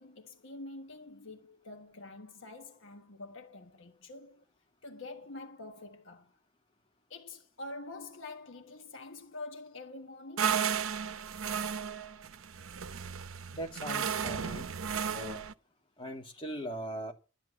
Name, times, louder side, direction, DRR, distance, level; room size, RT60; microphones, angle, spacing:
voice 1, 0.0-4.4 4.8-6.3 7.1-10.7, left 2 dB, 65° left, 1.3 m, -46 dB
sound 1, 10.4-15.5, right 7 dB, 70° right, 0.7 m, -34 dB
voice 2, 13.5-14.7 15.1-15.4 16.0-17.1, equal, 25° left, 2.3 m, -40 dB
12.5 x 9.8 x 6.9 m
head